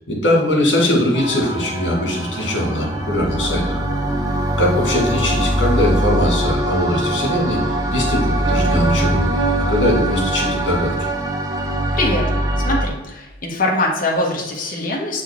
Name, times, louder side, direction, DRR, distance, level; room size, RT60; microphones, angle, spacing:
voice 1, 0.1-3.8 4.6-7.6 7.9-9.3 9.7-10.9, left 1 dB, 85° left, -1 dB, 2.2 m, -20 dB
sound 1, 1.1-12.9, right 1 dB, 20° right, 0.7 m, -22 dB
sound 2, 8.4-12.3, right 6 dB, 75° right, 0.7 m, -28 dB
voice 2, 11.9-12.3 12.6-15.2, left 2 dB, 50° left, -2 dB, 1.2 m, -22 dB
7.3 x 4.2 x 3.6 m, 1.1 s
head